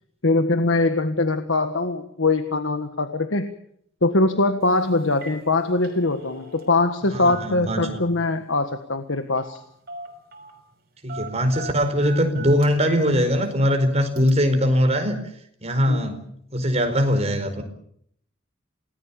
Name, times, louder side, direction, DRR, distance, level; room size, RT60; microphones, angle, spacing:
voice 1, 0.2-3.5 4.0-9.6 15.9-16.1, left 2 dB, 65° left, 8 dB, 1.6 m, -22 dB
Telephone, 4.6-4.8 5.1-5.4 5.7-7.0 7.3-8.2 9.4-9.6 9.9-10.6 11.1-13.1 13.4-13.5 14.2-14.3, right 2 dB, 50° right, 6.0 m, -39 dB
voice 2, 7.1-8.0 11.0-15.2 15.6-16.2 16.5-17.6, equal, 35° right, 6 dB, 4.7 m, -21 dB
28.5 x 19.5 x 7.1 m, 0.68 s
head